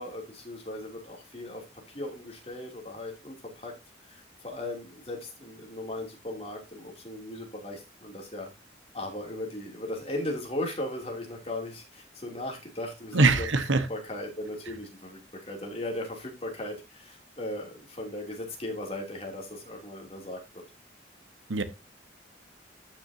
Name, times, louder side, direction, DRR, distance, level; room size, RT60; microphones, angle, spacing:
voice 1, 0.0-1.6 1.9-3.7 4.0-8.5 8.9-13.5 13.9-20.6, left 1 dB, 30° left, 2.9 m, -37 dB
voice 2, 13.1-13.9 21.5-21.6, right 3 dB, 90° right, 1.2 m, -22 dB
13.5 x 6.2 x 2.8 m
head